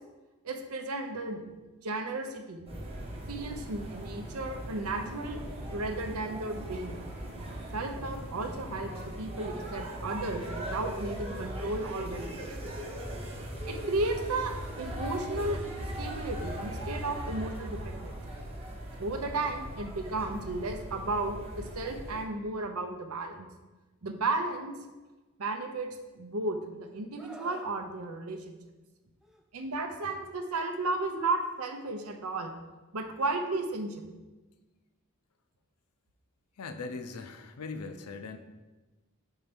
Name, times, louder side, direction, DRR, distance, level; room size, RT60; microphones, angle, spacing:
voice 1, 0.4-1.5 1.8-2.7 3.3-5.4 5.7-7.1 7.7-12.7 13.7-15.6 16.0-18.1 19.0-23.5 24.0-24.8 25.4-28.5 29.5-32.5 32.9-34.1, right 2 dB, 70° right, 6 dB, 0.7 m, -34 dB
sound 1, 2.7-22.2, right 1 dB, 25° right, 1.0 m, -39 dB
Screaming, 27.2-27.7 29.2-29.4, right 1 dB, ahead, 0.3 m, -48 dB
voice 2, 36.6-38.4, left 4 dB, 75° left, 8 dB, 0.5 m, -40 dB
4.6 x 4.3 x 5.2 m, 1.2 s
head